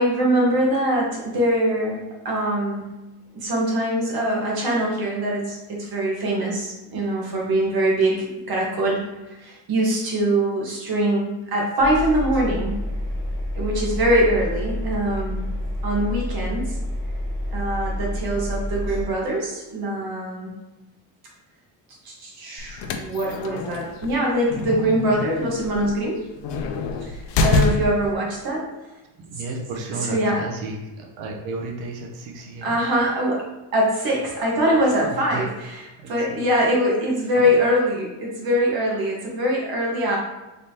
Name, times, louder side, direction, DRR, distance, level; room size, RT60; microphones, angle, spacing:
voice 1, 0.0-2.8 3.3-9.0 9.3-12.7 13.5-15.4 15.8-16.7 17.5-20.5 22.0-26.3 27.0-28.7 30.1-30.4 32.6-33.4 33.7-40.2, right 1 dB, 55° right, -2 dB, 1.4 m, -23 dB
Engine, 11.8-19.1, left 1 dB, 10° right, 1.4 m, -28 dB
sound 1, 22.6-28.1, left 3 dB, 70° left, 0.6 m, -26 dB
voice 2, 29.2-32.8 34.8-35.5 36.0-36.3 37.4-37.6, right 3 dB, 80° right, 1 dB, 0.8 m, -33 dB
4.0 x 3.3 x 2.8 m, 1.1 s
cardioid pair, 130°, 44 cm